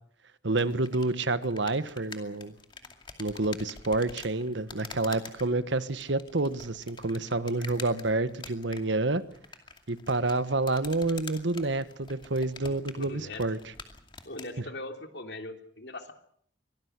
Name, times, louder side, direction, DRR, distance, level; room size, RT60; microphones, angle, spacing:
voice 1, 0.4-2.5 3.2-9.2 9.9-13.6, right 2 dB, 75° right, 13 dB, 1.3 m, -28 dB
sound 1, 0.5-14.5, left 4 dB, 25° left, 2.4 m, -47 dB
voice 2, 12.6-13.4 14.2-16.1, left 2 dB, 65° left, 5 dB, 3.2 m, -41 dB
24.0 x 18.0 x 8.2 m, 0.63 s
head